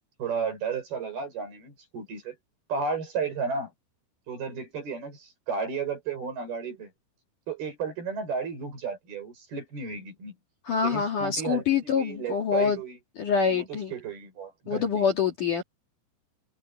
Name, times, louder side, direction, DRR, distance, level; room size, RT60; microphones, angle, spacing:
voice 1, 0.2-2.4 2.7-3.7 4.3-6.9 7.5-10.3 10.8-13.0 13.5-15.1, right 5 dB, 50° right, 8.8 m, -33 dB
voice 2, 10.6-12.8 13.2-13.9 14.7-15.6, left 6 dB, 50° left, 3.0 m, -25 dB
omnidirectional pair, 5.7 m